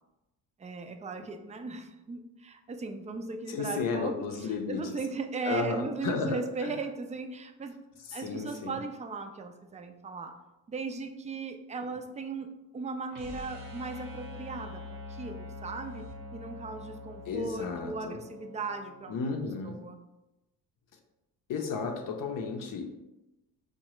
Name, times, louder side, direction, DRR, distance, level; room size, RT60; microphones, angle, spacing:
voice 1, 0.6-4.2 4.7-7.8 8.1-10.4 10.7-16.0 16.3-19.2 19.6-20.0, right 3 dB, 20° right, 6 dB, 0.3 m, -37 dB
voice 2, 3.5-5.0 5.4-6.7 8.0-8.8 17.2-18.2 19.1-19.8 21.5-23.0, left 4 dB, 60° left, 3 dB, 0.6 m, -33 dB
sound 1, 13.1-19.2, left 2 dB, 55° right, 0.8 m, -44 dB
4.6 x 2.2 x 3.0 m, 1.0 s
cardioid pair, 90°, 37 cm